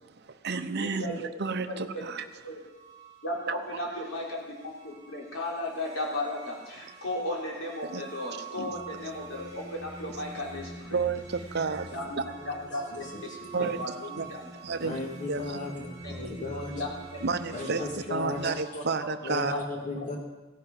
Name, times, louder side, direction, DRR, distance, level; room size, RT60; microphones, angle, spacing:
voice 1, 0.2-2.2 3.5-3.6 7.9-8.0 8.6-8.7 10.9-12.2 13.5-14.3 14.6-15.0 15.3-15.6 17.2-19.5, right 4 dB, 55° right, 8 dB, 0.8 m, -31 dB
voice 2, 0.8-1.3 1.7-2.1 2.4-2.6 3.2-11.0 11.9-12.2 12.7-13.3 13.6-14.2 14.7-14.8 16.0-16.1 16.5-16.9 17.7-17.8 18.4-19.1 19.5-19.6 19.9-20.0, left 1 dB, 90° left, -2 dB, 3.8 m, -35 dB
sound 1, 2.4-18.5, right 3 dB, 20° right, 2.6 m, -46 dB
voice 3, 13.1-13.7 14.8-16.8 17.5-18.4 19.2-20.2, left 2 dB, 40° left, 0 dB, 2.4 m, -36 dB
15.5 x 10.5 x 5.5 m, 1.2 s
head